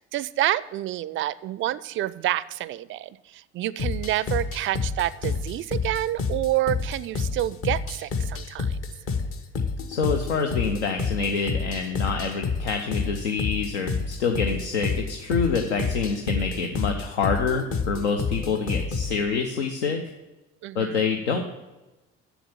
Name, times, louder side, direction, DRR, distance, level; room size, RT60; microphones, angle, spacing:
voice 1, 0.0-8.8 20.6-21.0, right 14 dB, 35° right, 18 dB, 0.4 m, -28 dB
sound 1, 3.8-19.2, left 4 dB, 40° left, 1.0 m, -29 dB
voice 2, 9.9-20.0 20.7-21.4, left 5 dB, 75° left, 4 dB, 0.7 m, -26 dB
7.1 x 7.1 x 7.2 m, 1.1 s
figure-of-eight pair, 55°, 34 cm